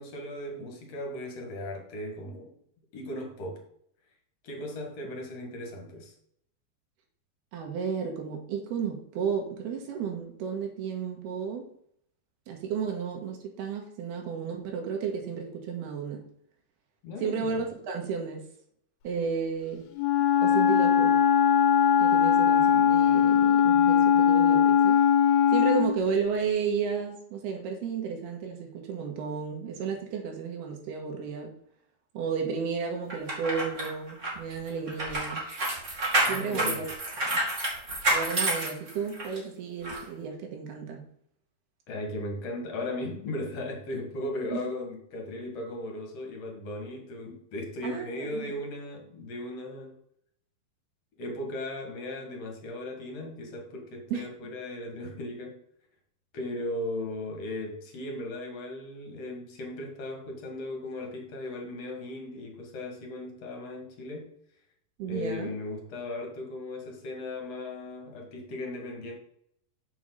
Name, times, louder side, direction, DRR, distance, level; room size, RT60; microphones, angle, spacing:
voice 1, 0.0-2.5 2.9-3.6 4.4-6.1 17.0-17.6 36.3-36.9 41.9-50.0 51.2-55.6 56.3-64.3 65.1-69.2, left 1 dB, 50° left, 2 dB, 2.6 m, -37 dB
voice 2, 7.5-11.7 12.5-16.2 17.2-18.4 19.0-19.9 20.4-21.2 22.0-25.0 25.5-31.5 32.1-35.4 36.3-36.9 37.2-37.4 38.1-41.0 44.5-44.6 47.8-48.4 54.1-54.3 65.0-65.6, right 6 dB, 85° right, 1 dB, 3.4 m, -33 dB
Wind instrument woodwind instrument, 20.0-26.0, left 8 dB, 90° left, 3.0 m, -20 dB
sound 1, 33.1-39.4 39.8-40.0, right 1 dB, 30° right, 1.5 m, -29 dB
7.1 x 6.0 x 5.6 m, 0.68 s
omnidirectional pair, 4.5 m